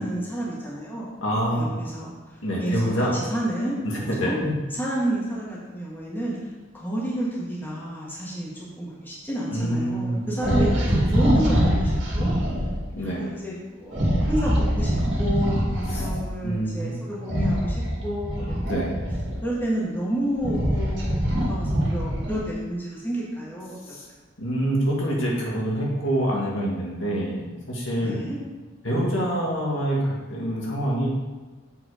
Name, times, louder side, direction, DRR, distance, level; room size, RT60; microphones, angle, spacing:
voice 1, 0.0-1.1 1.6-3.8 4.2-4.4 4.7-6.4 6.7-12.3 13.0-17.8 18.0-18.5 19.4-23.8 28.0-28.4, right 1 dB, 10° left, -6 dB, 1.8 m, -30 dB
voice 2, 1.2-1.7 2.4-3.1 3.8-4.5 9.5-11.0 12.9-13.3 15.9-16.0 16.4-17.0 18.7-19.0 23.9-24.1 24.4-28.2 28.8-31.1, right 1 dB, 75° left, -4 dB, 2.0 m, -26 dB
sound 1, 10.4-12.7 13.9-16.2 17.2-19.5 20.1-22.5, equal, 60° right, 2.2 m, -24 dB
8.0 x 4.8 x 5.0 m, 1.3 s
head